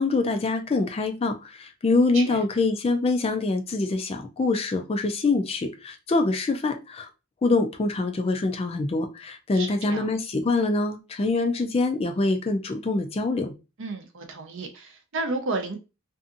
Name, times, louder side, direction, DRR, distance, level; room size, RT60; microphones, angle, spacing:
voice 1, 0.0-7.1 7.4-13.5, left 3 dB, 30° left, 0.3 m, -25 dB
voice 2, 9.6-10.1 13.8-15.8, right 3 dB, 60° right, 0.6 m, -32 dB
2.6 x 2.5 x 2.5 m
head